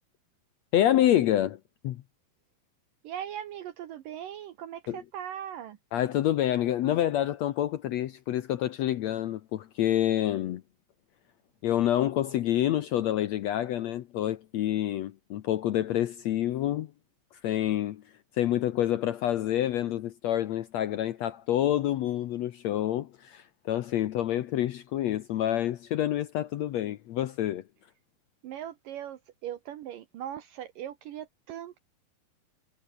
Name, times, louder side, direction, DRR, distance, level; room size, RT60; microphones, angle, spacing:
voice 1, 0.7-2.0 4.9-5.0 5.9-10.6 11.6-16.9 17.4-18.0 18.3-27.6, left 12 dB, 80° left, 1.5 m, -27 dB
voice 2, 3.0-5.8 28.4-31.8, right 10 dB, 70° right, 2.7 m, -39 dB
omnidirectional pair, 4.3 m